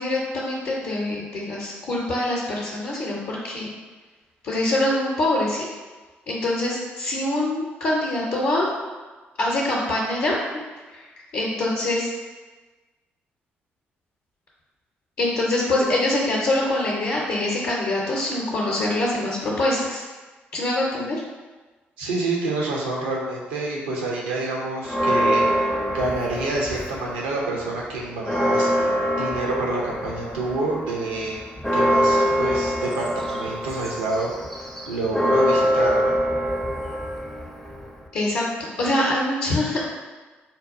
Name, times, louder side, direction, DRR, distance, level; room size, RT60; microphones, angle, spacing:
voice 1, 0.0-3.7 4.4-5.6 6.3-8.7 9.4-10.4 10.9-11.0 11.3-12.1 15.2-20.0 20.5-21.2 38.1-39.9, left 1 dB, 55° left, -4 dB, 0.6 m, -24 dB
voice 2, 22.0-28.9 29.1-31.4 31.7-34.3 34.9-36.2, right 2 dB, 80° right, -2 dB, 0.5 m, -28 dB
Church bell, 24.8-27.2 27.6-27.7 28.0-38.1, equal, 5° left, 0.4 m, -24 dB
3.9 x 2.2 x 2.5 m, 1.3 s
figure-of-eight pair, 40°, 6 cm